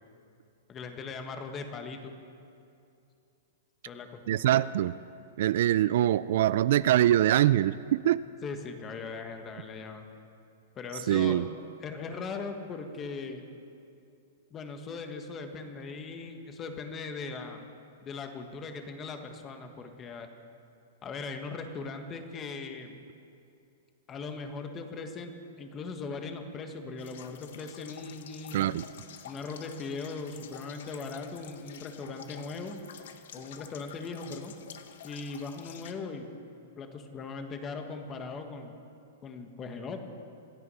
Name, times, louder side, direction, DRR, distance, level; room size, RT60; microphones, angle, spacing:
voice 1, 0.7-2.1 3.9-4.7 8.4-10.0 10.7-11.4 11.8-13.4 14.5-17.7 18.0-20.3 21.0-22.9 24.1-28.8 29.2-32.8 33.3-34.5 35.0-36.3 36.8-38.8 39.2-40.0, left 4 dB, 20° left, 6 dB, 1.5 m, -39 dB
voice 2, 4.3-5.0 5.4-8.2 11.1-11.5 28.5-28.8, right 12 dB, 60° right, 17 dB, 0.3 m, -24 dB
sound 1, 27.0-35.9, left 8 dB, 70° left, 1.1 m, -49 dB
26.0 x 9.5 x 5.6 m, 2.5 s
hypercardioid pair, 150°, 0 cm